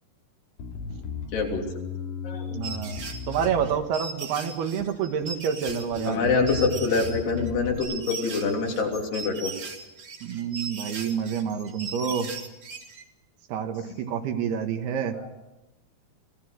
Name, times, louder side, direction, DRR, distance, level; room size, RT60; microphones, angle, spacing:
Bass guitar, 0.6-4.2 4.8-5.3 5.7-7.8, left 5 dB, 55° left, 3.9 m, -36 dB
voice 1, 1.3-1.6 2.2-2.6 6.1-9.5 15.2-15.3, left 4 dB, 90° left, 0 dB, 5.3 m, -25 dB
voice 2, 2.5-6.3 10.2-12.3 13.5-15.2, right 7 dB, 80° right, 6 dB, 3.5 m, -28 dB
sound 1, 2.6-13.0, right 4 dB, 40° right, 2.8 m, -38 dB
25.5 x 17.5 x 6.5 m, 0.95 s
omnidirectional pair, 4.6 m